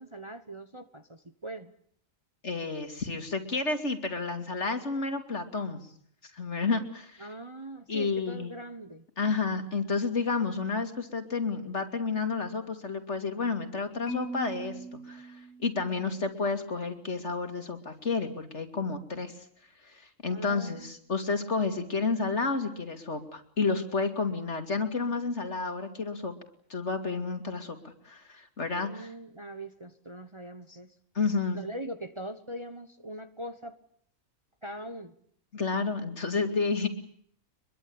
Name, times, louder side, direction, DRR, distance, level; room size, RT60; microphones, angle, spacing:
voice 1, 0.0-1.7 7.2-9.0 20.3-21.0 28.8-30.9 31.5-33.8 34.6-35.1, right 1 dB, 20° right, 9 dB, 1.2 m, -41 dB
voice 2, 2.4-5.8 6.3-7.3 7.9-8.5 9.2-14.7 15.0-19.3 19.8-26.3 26.7-29.1 31.1-31.6 35.5-36.9, left 4 dB, 55° left, 7 dB, 3.1 m, -31 dB
Marimba xylophone, 14.1-16.3, right 2 dB, 90° left, 3.7 m, -40 dB
24.5 x 23.0 x 8.8 m, 0.64 s
omnidirectional pair, 1.4 m